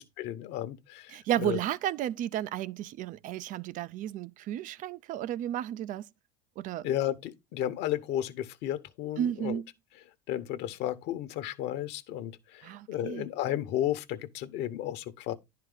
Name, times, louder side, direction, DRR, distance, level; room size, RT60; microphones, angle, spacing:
voice 1, 0.0-1.6 6.8-9.6 10.3-15.4, left 12 dB, 55° left, 1.0 m, -33 dB
voice 2, 1.1-6.1 6.6-6.9 9.2-9.7 12.6-13.3, right 11 dB, 40° right, 0.4 m, -33 dB
10.5 x 4.7 x 3.8 m
hypercardioid pair, 100°, 21 cm